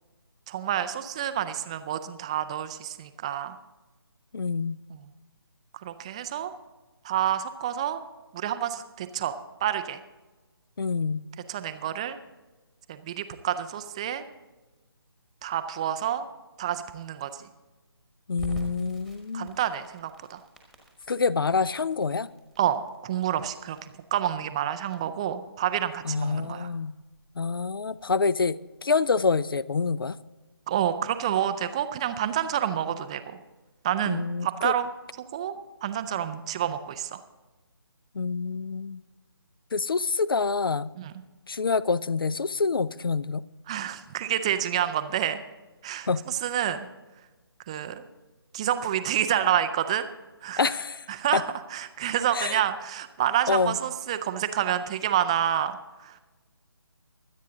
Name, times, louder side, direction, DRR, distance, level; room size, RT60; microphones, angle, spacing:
voice 1, 0.5-3.6 4.9-5.1 5.7-6.5 7.0-8.0 8.3-10.0 11.5-12.2 12.9-14.2 15.4-16.3 16.6-17.5 19.3-20.4 22.6-26.7 30.7-33.4 33.8-34.9 35.3-35.5 35.8-37.2 41.0-41.1 43.7-45.4 45.8-46.9 47.7-48.0 48.5-50.1 50.4-50.6 51.1-51.4 51.7-56.2, right 10 dB, 15° right, 0.4 m, -28 dB
voice 2, 4.3-4.8 10.8-11.2 18.3-19.5 21.1-22.3 26.0-26.9 27.4-30.2 34.0-34.7 38.1-39.0 39.7-40.9 41.5-43.4 46.1-46.2 50.6-51.0 51.3-51.4 52.3-52.6 53.5-53.8, left 4 dB, 60° left, 0.5 m, -26 dB
Crackle, 18.4-29.1, right 2 dB, ahead, 1.2 m, -47 dB
24.0 x 8.3 x 3.8 m
figure-of-eight pair, 150°, 13 cm